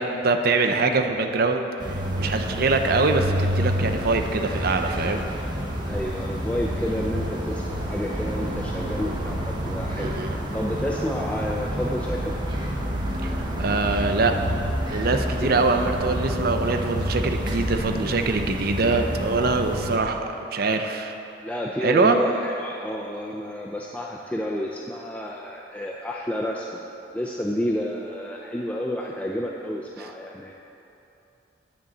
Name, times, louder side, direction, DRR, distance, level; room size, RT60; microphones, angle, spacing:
voice 1, 0.0-5.3 9.9-10.4 13.2-14.3 14.9-21.1 21.8-22.2, right 3 dB, 50° right, 5 dB, 0.6 m, -24 dB
sound 1, 1.8-20.0, equal, 25° right, 1.0 m, -28 dB
voice 2, 5.8-12.3 15.4-15.5 19.4-19.7 21.4-26.8 27.1-30.6, equal, 5° left, -2 dB, 0.4 m, -30 dB
9.6 x 5.3 x 7.2 m, 3.0 s
head